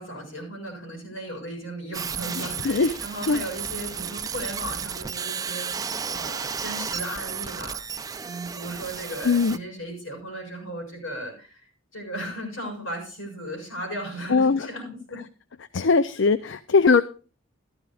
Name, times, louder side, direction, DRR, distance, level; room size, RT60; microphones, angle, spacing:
voice 1, 0.0-7.9 8.2-15.2, right 1 dB, 80° left, 2 dB, 7.4 m, -36 dB
sound 1, 1.9-9.6, right 6 dB, 15° right, 0.5 m, -33 dB
voice 2, 2.4-2.9 3.3-3.4 9.2-9.6 14.3-14.7 15.7-17.0, left 4 dB, 60° left, 15 dB, 0.5 m, -20 dB
14.5 x 13.0 x 2.4 m, 0.36 s
head